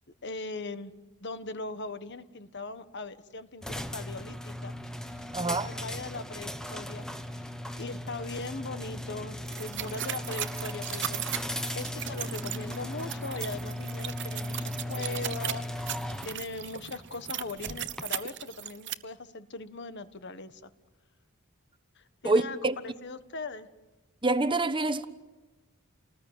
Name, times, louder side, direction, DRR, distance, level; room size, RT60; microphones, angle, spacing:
voice 1, 0.2-0.9 1.2-4.7 5.0-7.1 7.4-7.5 7.8-11.2 11.7-15.6 16.2-20.7 22.0-23.7, left 3 dB, 55° left, 1.4 m, -40 dB
sound 1, 3.6-18.0, left 1 dB, 5° left, 1.3 m, -37 dB
voice 2, 5.3-5.7 22.2-22.7 24.2-25.1, right 2 dB, 25° right, 1.1 m, -26 dB
sound 2, 9.5-18.9, right 11 dB, 60° right, 1.1 m, -37 dB
30.0 x 20.0 x 9.5 m
head